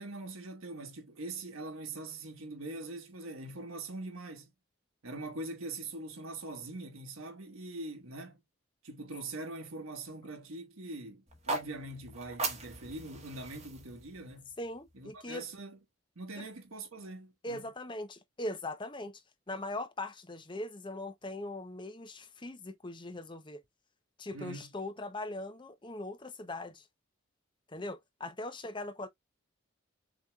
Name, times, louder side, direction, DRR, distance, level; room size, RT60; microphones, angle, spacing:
voice 1, 0.0-4.5 5.0-8.4 8.8-14.5 14.9-15.8 16.1-17.6 24.3-24.7, right 2 dB, 80° right, 1.4 m, -43 dB
sound 1, 11.3-15.4, right 3 dB, 30° right, 1.5 m, -40 dB
voice 2, 14.6-15.4 16.4-16.5 17.4-19.2 19.5-23.6 24.2-26.9 27.7-29.1, left 1 dB, 20° left, 0.7 m, -40 dB
6.5 x 3.0 x 2.3 m
head